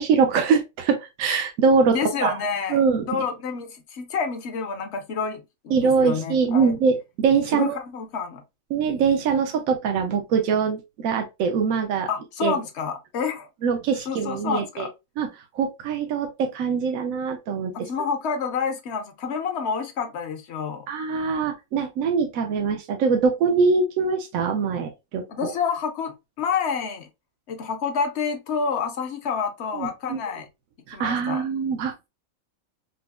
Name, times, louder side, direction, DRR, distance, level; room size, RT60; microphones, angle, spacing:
voice 1, 0.0-2.0 2.2-2.3 2.7-3.1 5.7-7.8 8.7-12.1 12.4-12.6 13.6-14.9 15.2-15.3 15.5-17.7 20.9-25.5 29.7-30.2 30.9-32.1, right 5 dB, 80° right, 1.1 m, -23 dB
voice 2, 1.9-6.8 7.5-8.4 12.1-13.5 14.1-14.9 17.7-20.9 25.3-27.1 27.5-30.5 30.9-31.4, left 6 dB, 60° left, 0.8 m, -28 dB
5.2 x 2.0 x 2.2 m
omnidirectional pair, 1.5 m